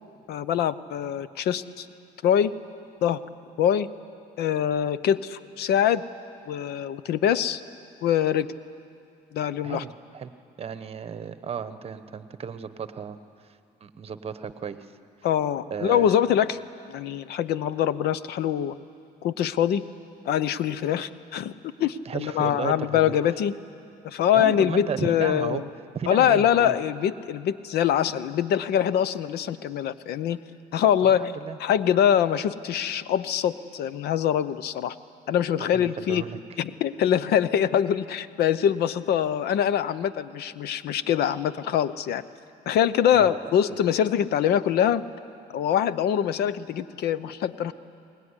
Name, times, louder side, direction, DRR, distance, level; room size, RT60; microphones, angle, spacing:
voice 1, 0.3-1.9 2.2-2.5 3.0-3.2 3.6-3.9 4.4-6.0 6.5-7.6 8.0-8.5 9.3-9.9 15.2-16.6 16.9-18.8 19.2-19.8 20.2-21.5 21.8-23.5 24.0-25.7 26.1-30.4 30.7-31.3 31.6-35.0 35.3-36.2 36.6-42.2 42.7-45.0 45.5-47.7, left 9 dB, 70° left, 15 dB, 0.8 m, -24 dB
voice 2, 9.6-10.3 10.6-13.2 13.8-14.8 15.7-16.1 22.0-23.0 24.3-25.6 25.9-26.8 31.0-31.6 35.6-36.4 43.1-43.8, right 7 dB, 35° right, 11 dB, 1.1 m, -34 dB
22.5 x 20.0 x 9.9 m, 2.5 s
cardioid pair, 110°, 17 cm